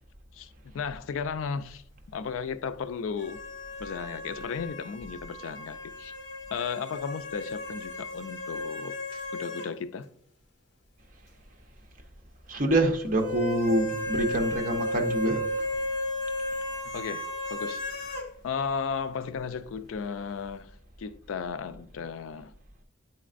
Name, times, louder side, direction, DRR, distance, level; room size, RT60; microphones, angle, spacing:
voice 1, 0.3-1.8 2.1-3.4 3.8-6.1 6.5-9.0 9.3-10.1 16.8-18.2 18.4-22.5, left 6 dB, 80° left, 0.4 m, -35 dB
sound 1, 3.2-9.7 10.0-10.1 13.2-18.3, left 1 dB, 65° left, 1.0 m, -34 dB
voice 2, 12.5-15.7, right 1 dB, 40° right, 0.7 m, -26 dB
9.1 x 4.2 x 2.5 m
head